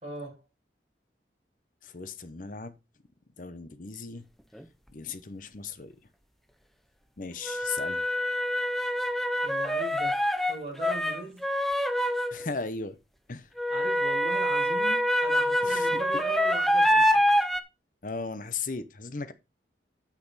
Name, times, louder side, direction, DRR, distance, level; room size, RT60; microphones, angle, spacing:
voice 1, 0.0-0.4 9.4-11.4 13.7-17.2, right 1 dB, 35° right, 5.7 m, -40 dB
voice 2, 1.8-2.7 3.4-4.2 4.9-5.9 7.2-8.0 12.3-13.0 13.3-13.5 15.6-15.9 18.0-19.3, left 4 dB, 45° left, 0.8 m, -36 dB
sound 1, 4.6-4.7 7.4-12.5 13.6-17.6, equal, ahead, 0.5 m, -25 dB
8.9 x 5.9 x 4.1 m
head